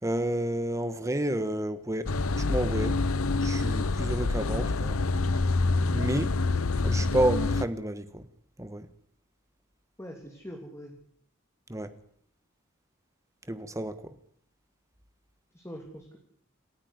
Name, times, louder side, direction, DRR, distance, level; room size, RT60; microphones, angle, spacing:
voice 1, 0.0-3.0 3.4-4.9 5.9-6.3 6.8-8.2 8.6-8.9 11.7-11.9 13.5-14.1, right 1 dB, 15° right, 1.5 m, -30 dB
sound 1, 2.1-7.6, left 3 dB, 75° left, 0.8 m, -27 dB
voice 2, 10.0-10.9 15.5-16.2, equal, 15° left, 2.9 m, -43 dB
28.0 x 9.7 x 9.7 m
head